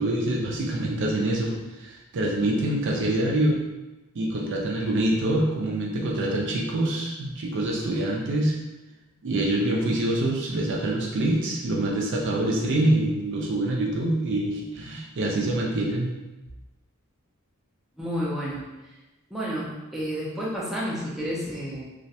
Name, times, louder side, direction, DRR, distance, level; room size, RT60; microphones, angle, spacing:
voice 1, 0.0-3.6 4.1-8.6 9.2-16.1, right 1 dB, 55° right, -1 dB, 0.4 m, -25 dB
voice 2, 18.0-18.6 19.3-21.8, equal, ahead, -7 dB, 0.5 m, -30 dB
2.4 x 2.1 x 2.6 m, 1.1 s
head